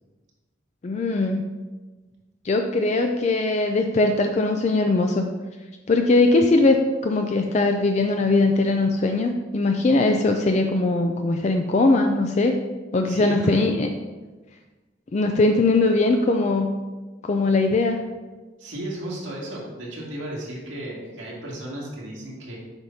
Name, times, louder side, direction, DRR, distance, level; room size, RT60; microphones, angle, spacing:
voice 1, 0.8-1.4 2.4-5.3 5.9-12.6 12.9-13.9 15.1-16.7 17.2-18.0, left 2 dB, 35° left, 4 dB, 0.4 m, -20 dB
voice 2, 13.1-13.6 18.6-22.6, right 1 dB, 90° right, -4 dB, 2.1 m, -34 dB
7.9 x 5.8 x 2.7 m, 1.3 s
head